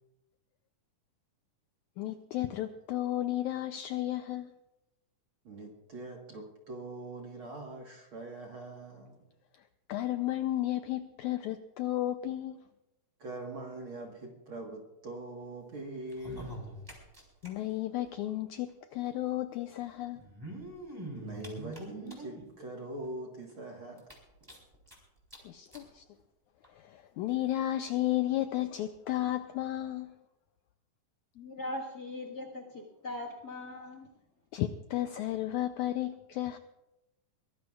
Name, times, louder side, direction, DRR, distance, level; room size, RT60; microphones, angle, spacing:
voice 1, 2.0-4.5 9.9-12.6 17.4-20.2 25.4-26.0 26.7-30.1 34.5-36.6, left 14 dB, 80° left, 8 dB, 1.7 m, -33 dB
voice 2, 5.4-9.2 13.2-16.6 21.1-24.0, right 2 dB, 50° right, 1 dB, 1.7 m, -43 dB
sound 1, 16.0-17.5 17.8-17.9 18.0-18.1 19.2-19.3 20.1-22.4 23.0-23.1 23.5-23.6 24.0-24.9 25.3-25.4 25.7-25.8 26.6-26.7, right 1 dB, 5° right, 3.3 m, -43 dB
voice 3, 31.3-34.1, left 1 dB, 40° left, 3 dB, 1.4 m, -40 dB
23.0 x 18.0 x 2.4 m, 0.94 s
omnidirectional pair, 4.0 m